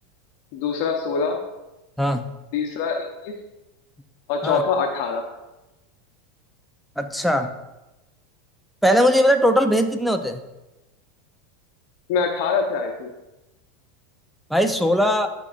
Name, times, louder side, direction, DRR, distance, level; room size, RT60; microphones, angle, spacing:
voice 1, 0.5-1.4 2.5-3.3 4.3-5.2 12.1-13.1, left 5 dB, 60° left, 2 dB, 0.8 m, -24 dB
voice 2, 7.0-7.5 8.8-10.4 14.5-15.3, equal, ahead, 7 dB, 0.6 m, -19 dB
11.5 x 5.2 x 2.5 m, 1.0 s
hypercardioid pair, 105°, 0 cm